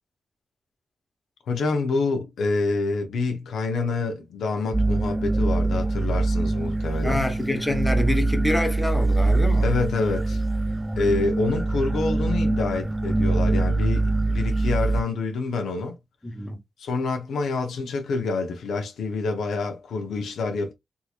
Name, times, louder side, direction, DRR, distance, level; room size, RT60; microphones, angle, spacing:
voice 1, 1.5-7.3 9.6-10.4 11.0-16.0 16.8-20.7, left 3 dB, 90° left, 0.8 m, -27 dB
sound 1, 4.7-15.0, right 2 dB, 15° right, 0.3 m, -23 dB
voice 2, 7.0-9.7 16.2-16.6, left 1 dB, 10° left, 1.0 m, -26 dB
3.7 x 2.9 x 2.4 m
cardioid pair, 70°, 0 cm